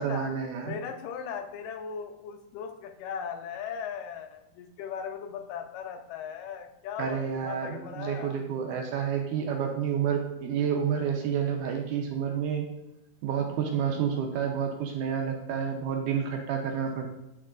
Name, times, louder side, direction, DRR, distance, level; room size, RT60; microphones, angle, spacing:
voice 1, 0.0-0.8 7.0-12.7 13.2-17.1, right 7 dB, 75° right, 3 dB, 2.1 m, -29 dB
voice 2, 0.6-8.4, left 7 dB, 85° left, 5 dB, 2.3 m, -38 dB
9.0 x 4.7 x 2.5 m, 0.88 s
omnidirectional pair, 3.9 m